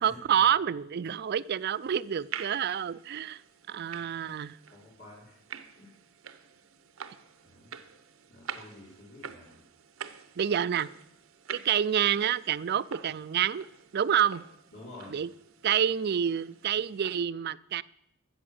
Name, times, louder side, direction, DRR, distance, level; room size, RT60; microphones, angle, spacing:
voice 1, 0.0-3.4 3.7-4.6 10.4-10.9 11.5-13.7 13.9-14.4 15.1-15.3 15.6-17.8, right 9 dB, 50° right, 17 dB, 0.4 m, -28 dB
sound 1, 1.2-17.2, right 8 dB, 80° right, 0.8 m, -47 dB
voice 2, 4.7-5.4 5.8-5.9 7.4-7.7 8.3-9.6 14.7-15.2, left 2 dB, 50° left, -5 dB, 3.8 m, -49 dB
13.5 x 7.8 x 7.3 m, 0.76 s
head